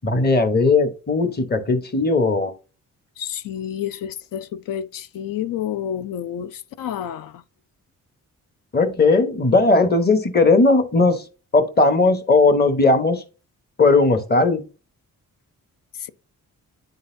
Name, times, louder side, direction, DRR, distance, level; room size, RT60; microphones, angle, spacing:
voice 1, 0.0-2.5 8.7-11.2 11.5-13.2 13.8-14.6, left 3 dB, 30° left, 0.9 m, -17 dB
voice 2, 3.2-7.4 16.0-16.1, left 10 dB, 80° left, 0.5 m, -29 dB
9.7 x 3.9 x 2.6 m
cardioid pair, 90°, 33 cm